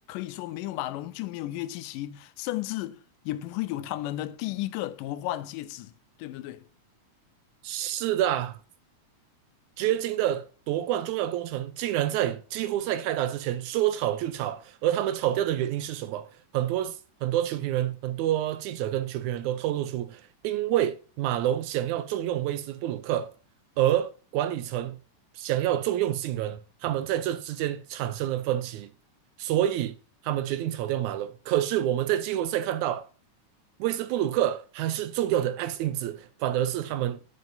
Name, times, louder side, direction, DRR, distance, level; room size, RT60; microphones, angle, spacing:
voice 1, 0.1-5.9 6.2-6.6, left 15 dB, 90° left, 2.2 m, -34 dB
voice 2, 7.6-8.6 9.8-16.3 16.5-23.3 23.8-25.0 25.4-28.9 29.4-29.9 30.2-33.1 33.8-37.2, right 12 dB, 80° right, 1.9 m, -28 dB
8.7 x 6.4 x 2.6 m
omnidirectional pair, 3.7 m